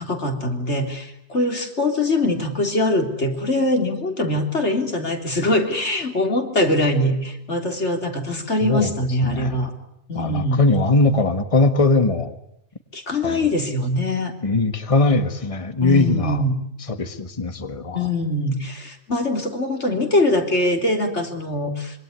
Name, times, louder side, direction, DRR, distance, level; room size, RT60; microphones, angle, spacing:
voice 1, 0.0-9.7 10.1-10.6 12.9-14.3 15.8-16.6 18.0-22.0, left 1 dB, 90° left, 4 dB, 3.8 m, -22 dB
voice 2, 8.6-8.9 9.2-9.7 10.1-12.3 13.2-13.5 14.4-16.4 16.8-18.1, left 2 dB, 30° left, 9 dB, 1.7 m, -20 dB
26.0 x 24.0 x 9.6 m, 0.74 s
omnidirectional pair, 1.1 m